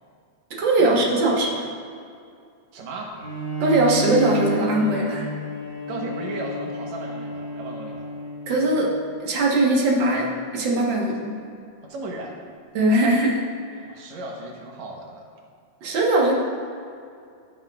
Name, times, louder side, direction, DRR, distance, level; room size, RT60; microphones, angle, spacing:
voice 1, 0.6-1.7 3.6-5.3 8.5-8.9 9.2-10.3 10.5-11.3 12.7-13.4 15.8-16.3, right 2 dB, 50° right, -2 dB, 1.5 m, -20 dB
voice 2, 2.7-3.2 5.9-8.1 11.0-11.1 11.8-12.4 13.8-15.3, right 2 dB, 70° right, 0 dB, 2.2 m, -35 dB
Bowed string instrument, 3.2-8.8, right 1 dB, 30° left, 2.6 m, -31 dB
15.0 x 8.1 x 2.4 m, 2.3 s
omnidirectional pair, 3.5 m